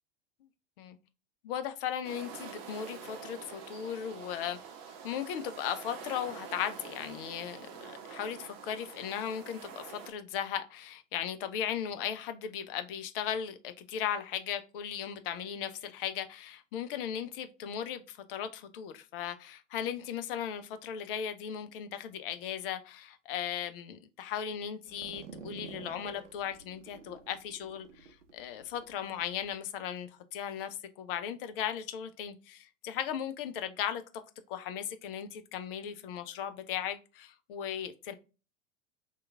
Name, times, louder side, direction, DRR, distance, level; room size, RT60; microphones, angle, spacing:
voice 1, 1.4-4.6 5.0-34.0 34.5-38.1, left 9 dB, 50° left, 0.5 m, -37 dB
sound 1, 2.0-10.1, right 6 dB, 40° right, 0.8 m, -46 dB
sound 2, 24.9-29.5, right 5 dB, 70° right, 0.7 m, -49 dB
2.9 x 2.3 x 3.4 m
figure-of-eight pair, 85°, 37 cm